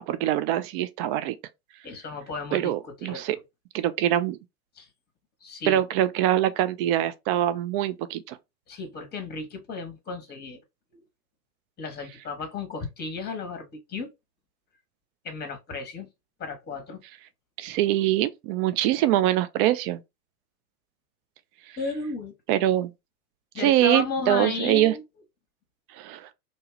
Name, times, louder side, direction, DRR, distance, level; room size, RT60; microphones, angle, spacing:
voice 1, 0.0-1.4 2.5-3.4 3.7-4.4 5.7-8.4 17.6-20.0 22.5-22.9 23.6-24.9 26.0-26.3, right 13 dB, 35° right, 0.4 m, -24 dB
voice 2, 1.8-3.4 4.8-4.9 5.4-5.8 8.7-10.6 10.9-11.0 11.8-14.1 15.2-16.1 16.4-17.0 21.8-22.3 23.5-25.0, left 4 dB, 20° left, 0.9 m, -34 dB
2.9 x 2.2 x 3.0 m
hypercardioid pair, 90°, 48 cm